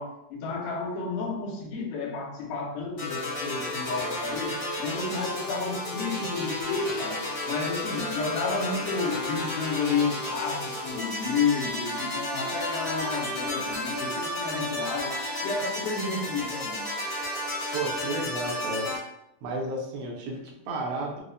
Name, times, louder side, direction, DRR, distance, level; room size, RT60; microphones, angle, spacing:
voice 1, 0.0-16.8, left 4 dB, 85° left, 0 dB, 2.3 m, -31 dB
sound 1, 3.0-19.0, left 1 dB, 60° left, 1.1 m, -32 dB
Insect, 6.0-11.7, equal, 45° left, 0.6 m, -53 dB
sound 2, 10.9-18.9, equal, 50° right, 0.9 m, -47 dB
voice 2, 17.7-19.0 19.4-21.2, right 2 dB, 75° right, -2 dB, 1.5 m, -32 dB
5.0 x 2.0 x 2.6 m, 0.80 s
omnidirectional pair, 3.6 m